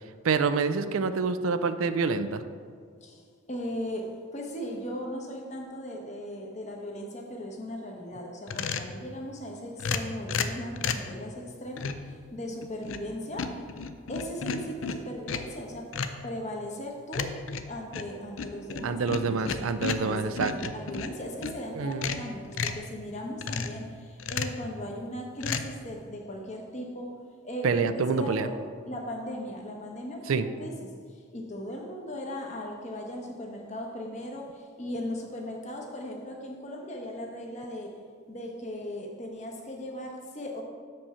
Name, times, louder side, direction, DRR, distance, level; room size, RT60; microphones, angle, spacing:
voice 1, 0.2-2.4 18.8-20.5 21.7-22.2 27.6-28.5 30.3-30.5, right 5 dB, 80° right, 11 dB, 0.4 m, -27 dB
voice 2, 3.0-13.6 14.1-15.9 16.2-17.4 17.7-19.6 20.0-27.2 27.4-28.6 28.9-38.0 38.3-40.6, equal, 35° left, 1 dB, 1.0 m, -38 dB
sound 1, 8.5-9.0 9.8-11.1 11.8-12.1 12.6-13.1 13.4-15.6 15.9-16.2 17.1-21.6 21.9-22.9 23.4-23.8 24.2-24.6 25.4-25.6, left 5 dB, 70° left, 0.5 m, -33 dB
7.1 x 5.3 x 5.5 m, 2.1 s
head